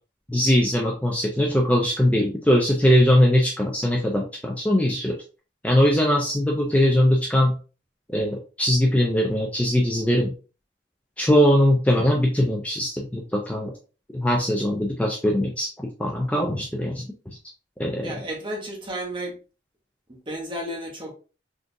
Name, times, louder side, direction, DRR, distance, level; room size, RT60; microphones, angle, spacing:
voice 1, 0.3-5.1 5.6-7.6 8.1-10.3 11.2-13.7 14.1-17.4 17.8-18.2, equal, 10° left, 0.4 m, -21 dB
voice 2, 18.0-19.4 20.1-21.1, right 1 dB, 25° right, 0.9 m, -32 dB
3.7 x 2.4 x 2.5 m
head